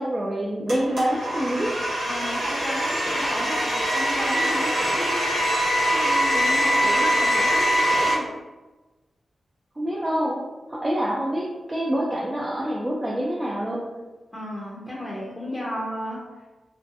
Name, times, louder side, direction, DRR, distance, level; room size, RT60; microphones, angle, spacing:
voice 1, 0.0-1.7 9.8-10.4 10.7-13.8, equal, 20° right, -5 dB, 0.4 m, -26 dB
Domestic sounds home sounds, 0.7-8.1, equal, 85° right, 0.9 m, -23 dB
voice 2, 2.1-5.2 5.9-8.3 14.3-16.2, equal, 15° left, -6 dB, 0.7 m, -33 dB
2.6 x 2.1 x 2.5 m, 1.2 s
cardioid pair, 55°, 0 cm